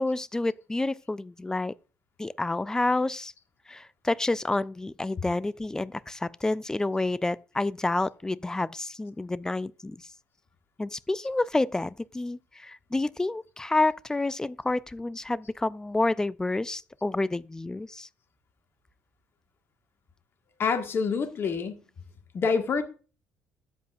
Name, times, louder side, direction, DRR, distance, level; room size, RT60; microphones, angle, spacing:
voice 1, 0.0-1.7 2.2-3.3 3.7-10.1 10.8-18.1, left 2 dB, 10° left, 0.4 m, -29 dB
voice 2, 20.6-21.8 22.3-22.8, left 5 dB, 40° left, 1.6 m, -26 dB
13.5 x 8.0 x 2.5 m
figure-of-eight pair, 50°, 6 cm